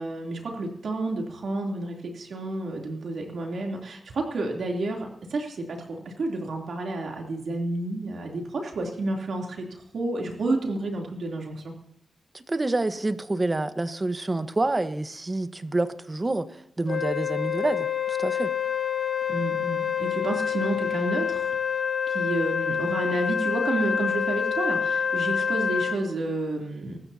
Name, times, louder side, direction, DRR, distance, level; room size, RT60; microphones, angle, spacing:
voice 1, 0.0-11.7 19.3-21.5 22.1-27.0, right 2 dB, 75° right, 1 dB, 3.2 m, -30 dB
voice 2, 12.3-18.5, right 2 dB, 30° right, 10 dB, 1.3 m, -28 dB
Wind instrument woodwind instrument, 16.9-26.0, left 7 dB, 65° left, 1.7 m, -27 dB
24.5 x 13.5 x 2.9 m, 0.74 s
cardioid pair, 55°, 0 cm